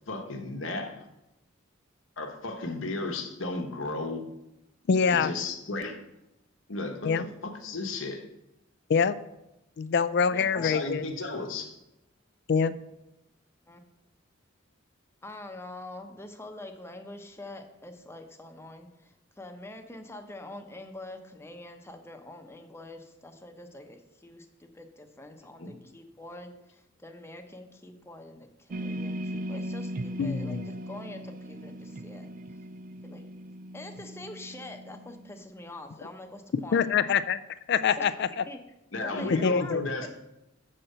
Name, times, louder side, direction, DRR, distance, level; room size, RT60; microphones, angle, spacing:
voice 1, 0.1-1.1 2.2-4.3 5.0-6.0 6.7-8.2 10.5-11.8 25.6-25.7 38.9-40.1, left 2 dB, 85° left, 4 dB, 1.2 m, -34 dB
voice 2, 4.9-5.3 7.0-7.2 8.9-9.2 9.8-11.0 12.5-12.7 30.2-30.7 36.5-37.4 37.7-38.4 39.4-39.8, left 6 dB, 60° left, 14 dB, 0.4 m, -25 dB
voice 3, 10.3-10.8 13.7-13.9 15.2-32.3 33.0-33.2 33.7-36.9 38.0-38.6 39.0-40.1, left 2 dB, 15° left, 5 dB, 0.8 m, -45 dB
sound 1, 28.7-35.4, right 1 dB, 45° right, 0.4 m, -38 dB
7.7 x 4.3 x 6.6 m, 0.90 s
head